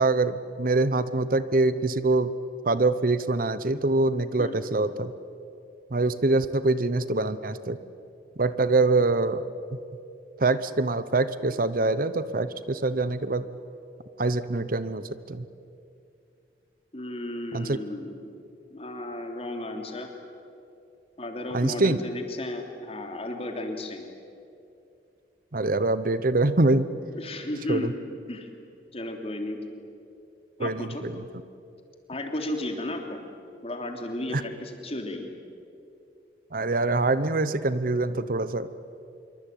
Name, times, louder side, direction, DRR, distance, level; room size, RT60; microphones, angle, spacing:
voice 1, 0.0-2.3 2.6-5.1 5.9-7.8 8.4-9.4 9.7-9.8 10.4-13.4 14.2-15.4 17.5-17.8 21.5-22.0 25.5-26.9 27.7-27.9 30.6-31.1 34.3-34.4 36.5-38.7, right 2 dB, 50° right, 14 dB, 0.9 m, -24 dB
voice 2, 16.9-18.1 18.7-20.1 21.2-24.1 27.1-28.0 28.3-28.5 28.9-29.6 30.6-31.0 32.1-33.2 33.6-35.3, left 1 dB, 35° left, 3 dB, 3.2 m, -33 dB
26.0 x 23.5 x 9.3 m, 2.6 s
head